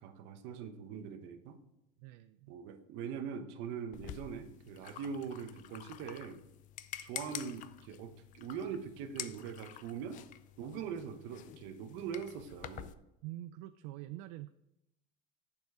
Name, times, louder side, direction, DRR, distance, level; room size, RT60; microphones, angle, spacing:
voice 1, 0.0-1.6 2.5-6.4 7.0-10.2 10.6-12.9, right 6 dB, 60° right, 9 dB, 1.0 m, -42 dB
voice 2, 2.0-2.5 13.2-14.5, right 15 dB, 75° right, 12 dB, 0.4 m, -45 dB
sound 1, 3.9-12.9, left 12 dB, 40° left, 0.5 m, -48 dB
8.1 x 6.9 x 4.8 m, 0.88 s
cardioid pair, 160°, 21 cm